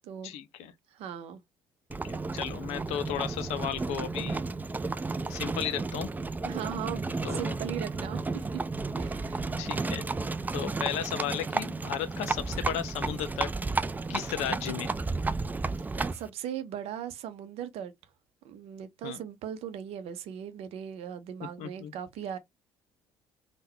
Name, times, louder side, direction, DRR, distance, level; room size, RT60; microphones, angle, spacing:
voice 1, 0.2-0.7 1.9-4.4 5.2-6.1 7.2-7.6 9.6-10.0 10.5-13.5 14.1-14.9 19.0-19.2 21.6-21.9, left 10 dB, 65° left, 0.6 m, -34 dB
voice 2, 0.9-1.4 6.4-8.6 9.0-9.4 16.1-17.9 18.4-22.4, right 9 dB, 60° right, 0.6 m, -38 dB
Livestock farm animals working animals, 1.9-16.3, right 3 dB, 15° right, 0.4 m, -33 dB
3.6 x 2.2 x 2.7 m
figure-of-eight pair, 50°, 12 cm